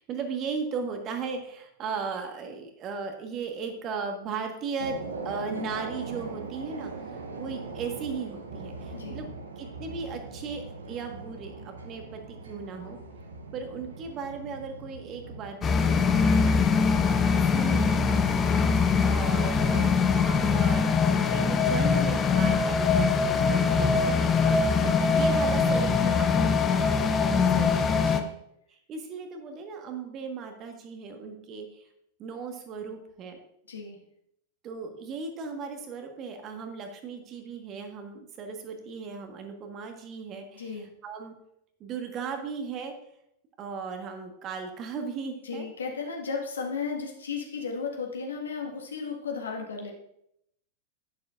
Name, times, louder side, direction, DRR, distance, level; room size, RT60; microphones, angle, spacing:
voice 1, 0.0-5.0 5.2-9.2 9.6-13.0 13.5-16.5 17.0-18.5 19.0-21.0 21.2-28.2 28.9-31.9 32.2-33.4 34.6-41.3 41.8-42.9 43.6-45.6, right 5 dB, 35° right, 4 dB, 1.5 m, -37 dB
sound 1, 4.8-15.5, right 3 dB, 70° right, 1.1 m, -40 dB
sound 2, 15.6-28.2, left 5 dB, 25° left, 0.8 m, -23 dB
voice 2, 16.7-17.1 28.1-28.3 33.7-34.0 40.5-40.9 45.4-49.9, left 5 dB, 70° left, 0 dB, 1.7 m, -34 dB
11.0 x 9.5 x 2.5 m, 0.76 s
figure-of-eight pair, 90°, 0 cm